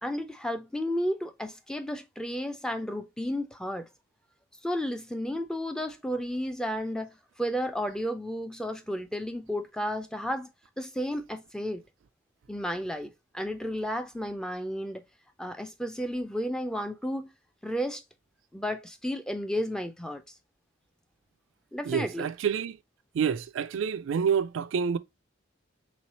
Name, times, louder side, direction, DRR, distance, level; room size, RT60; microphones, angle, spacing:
voice 1, 0.0-3.9 4.6-10.5 10.8-11.8 12.5-15.0 15.4-17.3 17.6-18.0 18.5-20.2 21.7-22.3, equal, 5° left, 0.4 m, -32 dB
voice 2, 21.9-22.8 23.1-25.0, right 7 dB, 70° right, 0.3 m, -28 dB
3.2 x 3.2 x 4.0 m
head